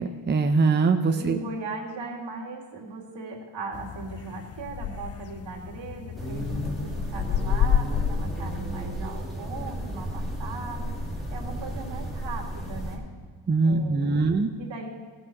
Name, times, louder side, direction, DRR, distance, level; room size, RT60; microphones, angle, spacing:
voice 1, 0.0-1.4 13.5-14.5, right 4 dB, 25° right, 5 dB, 0.7 m, -22 dB
voice 2, 1.1-10.9 11.3-13.0 13.6-14.3 14.6-14.9, right 3 dB, 75° right, -2 dB, 2.5 m, -38 dB
sound 1, 3.7-8.8, left 8 dB, 35° left, 0.4 m, -30 dB
sound 2, 6.2-13.0, equal, ahead, 2.5 m, -33 dB
16.5 x 5.9 x 6.5 m, 1.5 s
cardioid pair, 95°, 44 cm